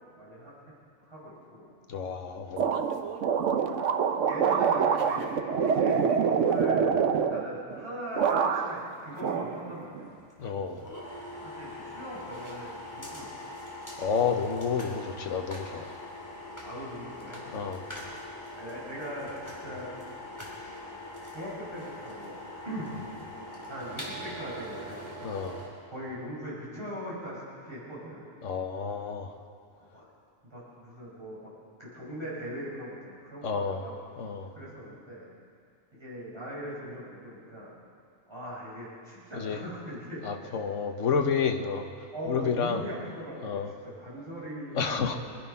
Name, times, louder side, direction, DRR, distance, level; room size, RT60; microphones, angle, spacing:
voice 1, 0.2-0.5 1.0-1.7 4.2-6.9 7.3-10.1 11.4-13.6 15.6-15.7 16.6-17.6 18.5-19.3 19.6-19.9 20.6-20.8 21.3-22.4 22.6-22.9 23.7-25.1 25.9-28.3 29.9-30.0 30.5-31.5 31.8-34.0 34.5-35.3 35.9-37.7 38.3-41.0 42.1-45.4, equal, 20° right, -8 dB, 5.6 m, -40 dB
voice 2, 1.9-2.6 10.4-10.8 14.0-15.9 17.5-17.8 25.2-25.6 28.4-29.3 33.4-33.8 34.2-34.5 39.3-39.6 40.2-41.9 42.3-42.8 43.4-43.7 44.7-45.2, left 6 dB, 70° left, 5 dB, 1.3 m, -30 dB
sound 1, 2.6-7.8 8.1-8.9 9.2-10.1, right 6 dB, 70° right, 1.1 m, -26 dB
sound 2, 10.1-25.7, left 1 dB, 15° left, 2.9 m, -42 dB
22.5 x 11.5 x 5.6 m, 2.3 s
omnidirectional pair, 1.4 m